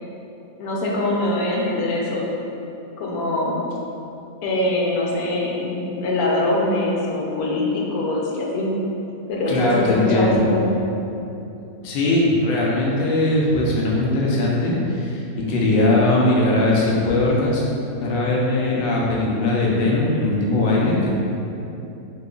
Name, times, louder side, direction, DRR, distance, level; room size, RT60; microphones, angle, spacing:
voice 1, 0.6-2.3 3.0-3.6 4.4-8.7 9.3-10.7, left 1 dB, 80° left, -3 dB, 1.1 m, -23 dB
voice 2, 9.5-10.4 11.8-15.2 15.5-17.7 18.0-21.1, left 2 dB, 60° left, -4 dB, 0.6 m, -20 dB
2.9 x 2.3 x 3.7 m, 2.8 s
omnidirectional pair, 1.5 m